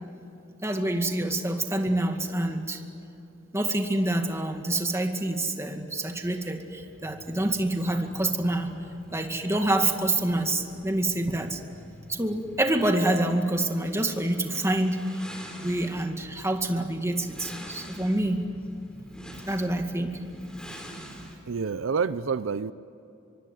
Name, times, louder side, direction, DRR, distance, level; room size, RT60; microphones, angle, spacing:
voice 1, 0.6-2.8 3.5-8.7 9.1-11.6 12.1-15.0 15.6-18.5 19.4-20.2, right 1 dB, 15° right, 4 dB, 2.1 m, -27 dB
sound 1, 6.0-21.4, equal, 5° left, 3.7 m, -46 dB
voice 2, 21.5-22.7, right 5 dB, 75° right, 15 dB, 0.6 m, -28 dB
24.5 x 23.5 x 9.4 m, 2.8 s
head